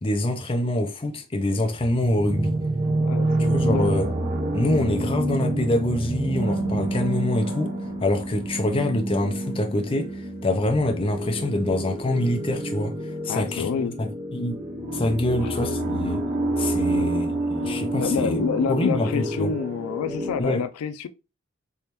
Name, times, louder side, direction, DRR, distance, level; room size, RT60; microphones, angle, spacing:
voice 1, 0.0-2.6 3.4-4.1 4.5-7.7 8.0-12.9 13.2-14.6 14.9-16.2 16.6-18.4 18.7-19.5 20.4-20.6, left 1 dB, 25° left, 0.5 m, -25 dB
sound 1, 1.7-20.4, right 1 dB, 35° right, 0.5 m, -28 dB
voice 2, 2.9-3.9 13.3-14.0 15.4-15.5 16.9-17.1 17.9-21.1, left 6 dB, 90° left, 0.3 m, -28 dB
3.4 x 3.1 x 2.9 m
head